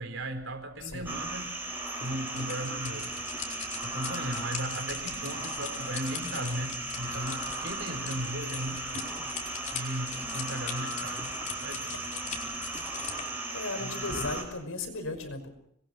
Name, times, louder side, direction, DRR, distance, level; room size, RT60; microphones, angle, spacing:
voice 1, 0.0-1.6 2.0-3.2 3.8-9.3 9.6-11.9 13.8-14.1, right 1 dB, 60° right, 7 dB, 4.4 m, -37 dB
voice 2, 0.8-1.1 8.7-8.8 13.5-15.5, left 2 dB, 70° left, 7 dB, 5.6 m, -36 dB
sound 1, 1.1-14.4, right 2 dB, 10° right, 5.8 m, -36 dB
sound 2, 1.9-13.2, left 5 dB, 35° left, 4.4 m, -42 dB
27.5 x 22.0 x 6.2 m, 0.69 s
head